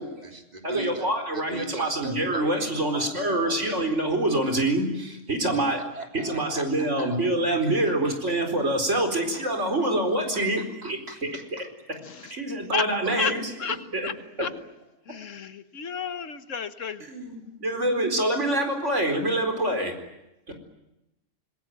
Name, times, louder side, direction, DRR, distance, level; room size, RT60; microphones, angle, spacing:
voice 1, 0.0-1.1 1.3-3.9 5.5-7.2 7.6-8.4 9.1-9.5 10.3-12.0 13.0-13.3 13.7-13.8, right 1 dB, 30° right, 4 dB, 3.3 m, -40 dB
voice 2, 0.6-5.8 6.1-11.3 12.3-13.4 13.9-14.0 14.4-14.5 17.0-20.0, right 1 dB, 65° right, 5 dB, 4.8 m, -26 dB
voice 3, 12.0-12.8 13.2-13.3 13.6-13.8 14.0-14.1 14.4-14.5 15.1-17.1, left 6 dB, 75° left, 11 dB, 1.6 m, -32 dB
26.0 x 21.5 x 9.3 m, 0.90 s
omnidirectional pair, 1.3 m